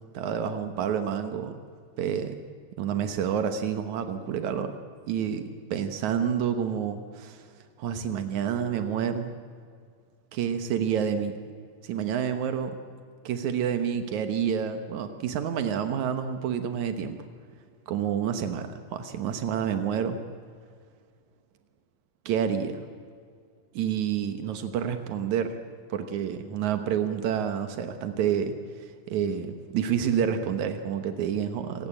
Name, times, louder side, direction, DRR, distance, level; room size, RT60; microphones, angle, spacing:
voice 1, 0.1-1.6 2.0-2.4 2.8-4.7 5.1-5.4 5.7-7.4 7.8-9.3 10.3-11.4 11.8-12.8 13.2-17.2 17.9-20.2 22.2-22.8 23.7-25.5 25.9-31.9, right 8 dB, 90° right, 8 dB, 1.6 m, -28 dB
27.0 x 17.0 x 8.7 m, 2.1 s
omnidirectional pair, 5.2 m